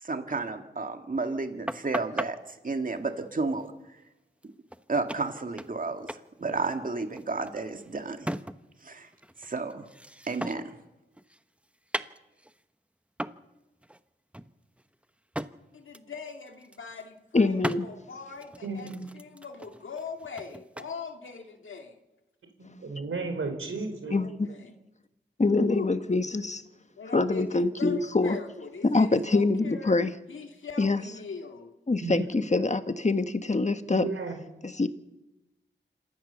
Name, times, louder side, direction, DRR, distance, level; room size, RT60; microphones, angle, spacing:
voice 1, 0.0-3.7 4.9-8.4 8.8-9.1 9.4-9.9 10.3-10.6, right 3 dB, 45° right, 6 dB, 2.0 m, -32 dB
sound 1, 1.7-2.3 4.4-4.5 4.7-4.8 5.1-5.8 6.1-6.3 6.6-8.8 9.1-10.8 11.1-12.6 13.2-13.5 13.8-14.0 14.3-15.6 15.9-16.2 16.5-17.0 17.6-17.8 18.4-20.9, right 1 dB, 5° right, 1.0 m, -37 dB
voice 2, 15.7-21.9 24.1-24.8 25.7-25.9 27.0-30.0 30.3-31.7, left 5 dB, 80° left, 4 dB, 2.1 m, -41 dB
voice 3, 17.3-17.8 24.1-24.5 25.4-26.6 27.1-28.4 28.8-30.1 30.8-31.0 31.9-34.1 34.6-34.9, left 3 dB, 35° left, 10 dB, 1.4 m, -25 dB
voice 4, 18.6-19.1 22.6-24.2 32.0-32.2 33.9-34.4, right 3 dB, 85° right, 5 dB, 4.1 m, -34 dB
27.0 x 15.0 x 6.9 m, 0.99 s
cardioid pair, 60°, 20 cm